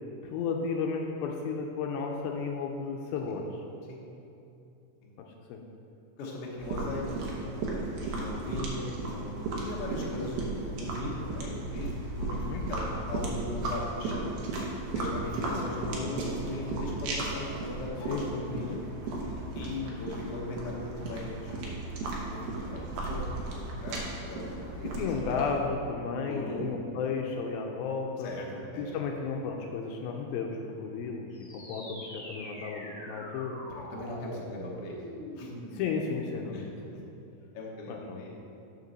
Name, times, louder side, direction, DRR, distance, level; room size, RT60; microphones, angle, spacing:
voice 1, 0.2-3.6 5.2-5.6 12.3-12.6 18.1-18.8 24.8-28.3 28.8-33.6 35.7-37.1 37.9-38.2, left 5 dB, 80° left, 2 dB, 2.3 m, -34 dB
voice 2, 6.2-14.3 14.9-18.8 19.5-22.0 22.3-22.8 23.1-25.3 26.3-26.7 28.2-28.9 33.7-35.0 35.4-35.5 36.5-36.7 37.5-38.4, left 2 dB, 60° left, -3 dB, 1.6 m, -39 dB
sound 1, 6.6-25.6, right 2 dB, 75° right, 2.9 m, -35 dB
sound 2, 31.3-36.3, left 1 dB, 10° left, 1.2 m, -44 dB
6.8 x 6.7 x 6.3 m, 2.7 s
omnidirectional pair, 4.4 m